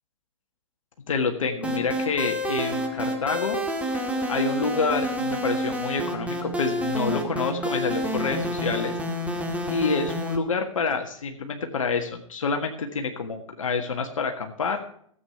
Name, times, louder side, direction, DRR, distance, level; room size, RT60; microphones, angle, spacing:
voice 1, 1.1-3.6 3.9-4.0 4.3-8.9 9.7-14.8, left 4 dB, 75° left, 4 dB, 1.6 m, -27 dB
sound 1, 1.6-10.4, equal, 10° right, 2.0 m, -29 dB
14.5 x 8.3 x 5.9 m, 0.63 s
hypercardioid pair, 115°, 17 cm